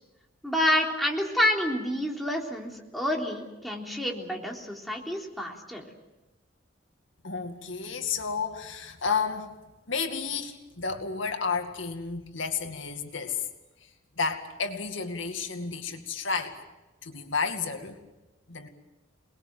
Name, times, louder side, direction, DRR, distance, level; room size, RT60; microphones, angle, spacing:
voice 1, 0.4-5.9, left 1 dB, ahead, -1 dB, 3.6 m, -28 dB
voice 2, 7.2-9.6 9.9-13.5 13.8-13.9 14.2-16.6 17.0-18.0 18.5-18.7, left 5 dB, 75° left, 5 dB, 2.3 m, -31 dB
28.5 x 20.5 x 7.9 m, 1.1 s
head